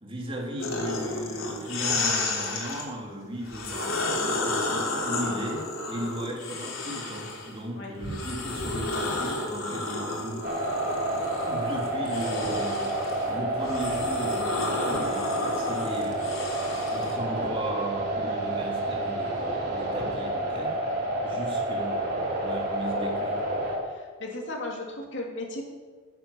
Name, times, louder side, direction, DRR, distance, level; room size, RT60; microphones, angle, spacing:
voice 1, 0.0-10.5 11.4-12.9 13.3-16.4 16.9-20.7 21.2-23.4, right 1 dB, 25° right, -1 dB, 2.9 m, -36 dB
sound 1, 0.6-2.9 3.4-7.5 8.0-17.2, left 2 dB, 90° left, 3.3 m, -32 dB
sound 2, 10.4-23.8, right 1 dB, 50° right, 4.3 m, -29 dB
voice 2, 23.8-25.7, left 2 dB, 60° left, 0 dB, 2.9 m, -37 dB
15.5 x 9.3 x 7.2 m, 1.5 s
head